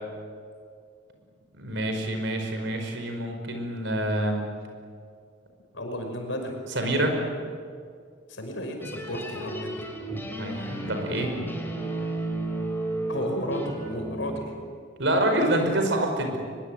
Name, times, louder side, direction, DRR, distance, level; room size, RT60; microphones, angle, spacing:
voice 1, 1.5-4.4 6.7-7.1 10.2-11.4 15.0-16.4, right 1 dB, 70° right, 4 dB, 5.1 m, -27 dB
voice 2, 5.7-6.6 8.3-9.8 13.1-14.5, equal, 75° left, 3 dB, 5.7 m, -33 dB
sound 1, 8.8-14.4, right 1 dB, 10° left, 4.1 m, -33 dB
23.0 x 22.0 x 9.3 m, 2.2 s
head